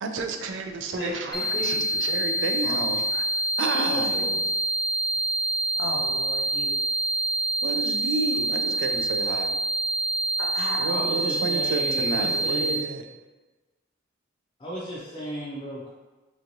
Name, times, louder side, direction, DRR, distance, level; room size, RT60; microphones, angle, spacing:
voice 1, 0.0-3.2 3.6-4.2 7.6-9.6 10.8-13.1, right 3 dB, 70° right, 5 dB, 0.4 m, -31 dB
voice 2, 1.0-1.8 2.6-2.8 10.9-12.8 14.6-15.9, equal, 25° left, -7 dB, 0.5 m, -35 dB
sound 1, 1.3-12.8, right 2 dB, ahead, 0.8 m, -26 dB
voice 3, 3.7-4.4 5.8-6.8 10.4-10.9, left 2 dB, 85° left, 0 dB, 0.6 m, -35 dB
3.5 x 3.0 x 2.6 m, 1.2 s
head